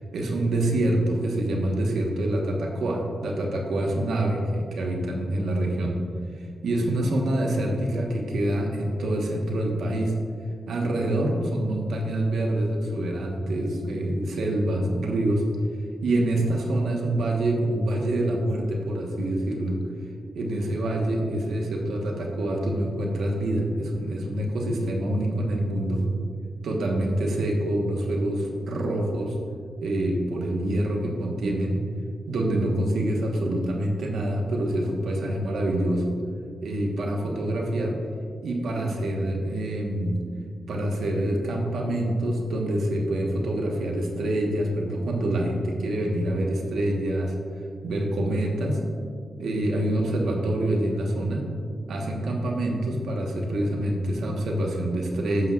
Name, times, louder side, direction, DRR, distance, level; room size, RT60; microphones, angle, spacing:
voice 1, 0.1-6.0 6.4-10.2 10.7-15.4 16.0-19.8 20.3-26.0 26.6-29.3 29.8-31.8 32.3-36.2 36.6-38.0 38.4-40.2 40.7-47.3 47.8-48.8 49.4-51.4 51.9-55.5, right 1 dB, 85° right, 0 dB, 1.2 m, -26 dB
11.0 x 7.5 x 2.4 m, 2.2 s
cardioid pair, 70°, 0 cm